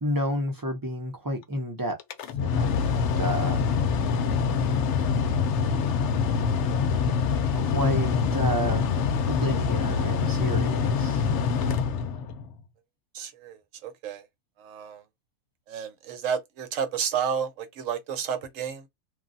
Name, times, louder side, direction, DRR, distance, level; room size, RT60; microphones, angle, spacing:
voice 1, 0.0-2.0 2.5-3.6 7.5-8.9 9.3-11.2, equal, 25° right, 0.4 m, -30 dB
Mechanical fan, 2.0-12.5, left 6 dB, 65° left, 0.7 m, -25 dB
voice 2, 13.1-13.6 13.8-14.2 14.6-15.0 15.7-18.9, right 7 dB, 70° right, 1.0 m, -31 dB
3.2 x 2.2 x 2.6 m
omnidirectional pair, 1.5 m